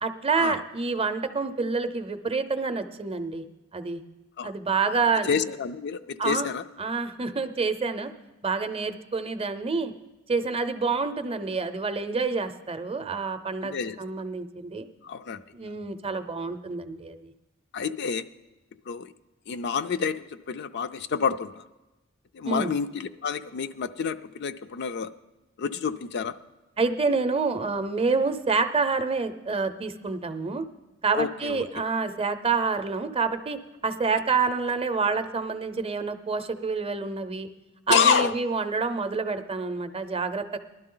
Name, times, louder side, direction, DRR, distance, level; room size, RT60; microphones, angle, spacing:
voice 1, 0.0-3.4 3.7-4.0 4.4-5.4 6.2-6.5 6.8-8.1 8.4-9.9 10.3-14.9 15.5-17.3 22.4-22.7 26.8-30.7 31.0-33.6 33.8-37.5 37.9-40.6, right 4 dB, 30° right, 9 dB, 0.6 m, -27 dB
voice 2, 5.2-6.6 13.6-14.0 15.0-15.4 17.7-18.3 18.9-19.1 19.5-21.7 22.3-25.1 25.6-26.4 31.1-31.8 37.9-38.3, left 6 dB, 55° left, 11 dB, 0.4 m, -28 dB
19.5 x 12.0 x 3.8 m, 1.0 s
head